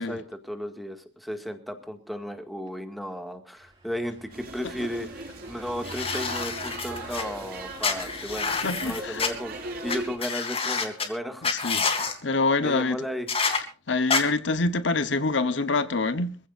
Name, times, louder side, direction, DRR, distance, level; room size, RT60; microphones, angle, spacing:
voice 1, 0.0-11.5 12.6-13.3, equal, ahead, 2.0 m, -35 dB
Car passing by / Engine, 3.5-10.3, right 2 dB, 25° right, 6.4 m, -49 dB
sound 1, 4.3-10.2, right 2 dB, 55° right, 5.6 m, -39 dB
sound 2, 5.8-7.2 7.8-9.3 9.9-10.0 10.2-11.1 11.4-12.1 13.3-13.6 14.1-14.2, left 5 dB, 30° left, 2.6 m, -27 dB
voice 2, 8.5-9.2 11.4-11.9 12.2-13.0 13.9-16.4, left 3 dB, 75° left, 1.0 m, -26 dB
25.5 x 15.5 x 2.6 m
head